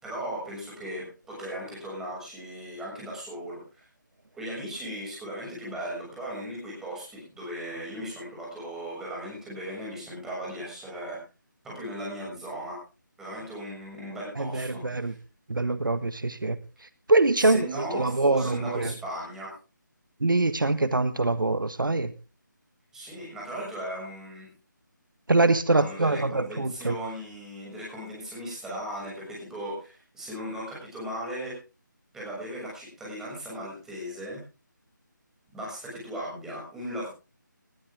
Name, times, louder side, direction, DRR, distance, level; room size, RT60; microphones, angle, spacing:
voice 1, 0.0-3.8 4.3-11.2 11.6-12.8 13.2-15.1 17.4-19.5 22.9-24.5 25.7-31.6 32.1-34.4 35.5-37.1, equal, 5° right, 6.8 m, -37 dB
voice 2, 14.4-15.1 15.5-16.6 17.1-18.9 20.2-22.1 25.3-26.9, right 2 dB, 85° right, 1.4 m, -24 dB
20.0 x 12.0 x 3.7 m
figure-of-eight pair, 160°, 11 cm